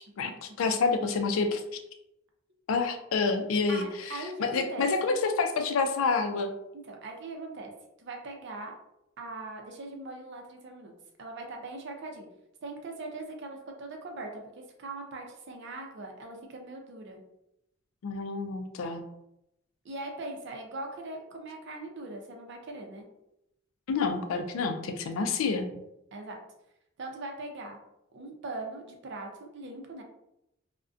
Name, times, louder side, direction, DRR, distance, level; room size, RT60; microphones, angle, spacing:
voice 1, 0.6-1.6 2.7-6.5 18.0-19.0 23.9-25.7, left 4 dB, 85° left, 7 dB, 0.3 m, -28 dB
voice 2, 3.7-4.9 6.9-7.7 8.0-8.7 9.2-10.9 11.2-12.3 12.6-17.2 19.8-23.1 26.1-26.4 27.0-27.8 28.1-30.0, right 2 dB, 60° right, 2 dB, 0.5 m, -40 dB
2.4 x 2.1 x 2.4 m, 0.84 s
head